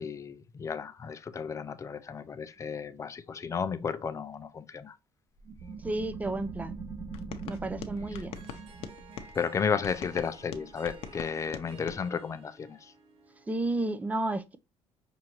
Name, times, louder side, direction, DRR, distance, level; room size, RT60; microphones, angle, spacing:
voice 1, 0.0-5.0 9.3-12.9, left 6 dB, 30° left, 0.5 m, -33 dB
sound 1, 5.4-10.7, right 4 dB, 40° right, 1.5 m, -42 dB
voice 2, 5.8-6.8 7.4-8.4 13.5-14.6, right 2 dB, 15° right, 0.5 m, -32 dB
sound 2, 7.1-9.3 9.8-12.0, left 7 dB, 85° left, 0.7 m, -43 dB
Harp, 8.1-13.9, right 4 dB, 65° right, 1.1 m, -54 dB
5.8 x 2.7 x 3.0 m
cardioid pair, 115°, 10 cm